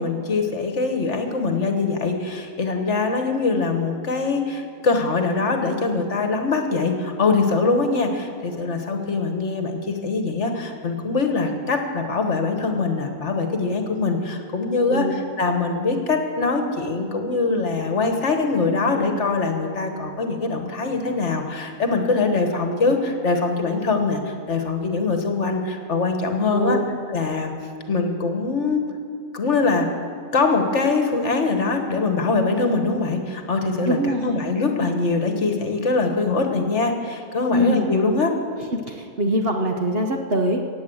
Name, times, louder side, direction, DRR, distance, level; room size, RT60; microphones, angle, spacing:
voice 1, 0.0-26.8 27.1-27.5 27.9-28.8 29.3-29.9 30.3-38.4, left 3 dB, 50° left, 5 dB, 1.5 m, -23 dB
voice 2, 26.5-26.8 33.8-34.4 37.5-37.9 38.7-40.6, equal, 45° right, 3 dB, 1.0 m, -23 dB
16.5 x 8.7 x 7.8 m, 2.5 s
omnidirectional pair, 1.6 m